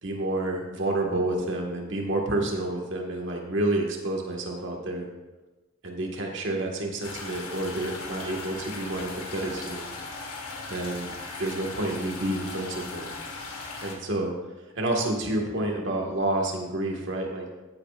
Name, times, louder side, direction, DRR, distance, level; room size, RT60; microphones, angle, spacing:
voice 1, 0.0-5.0 5.8-9.8 10.7-11.1 11.4-13.1 13.8-14.3 14.7-17.4, right 1 dB, 55° right, 0 dB, 1.6 m, -29 dB
sound 1, 7.0-13.9, left 3 dB, 85° left, 1.7 m, -38 dB
14.5 x 8.7 x 2.5 m, 1.1 s
head